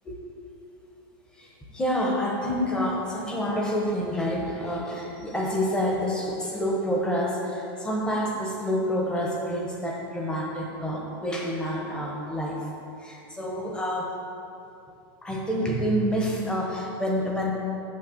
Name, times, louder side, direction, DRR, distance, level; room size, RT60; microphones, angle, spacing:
voice 1, 1.3-12.7 13.0-14.2 15.2-17.5, equal, 5° left, -1 dB, 1.0 m, -28 dB
7.5 x 6.5 x 7.3 m, 2.7 s
supercardioid pair, 170°, 12 cm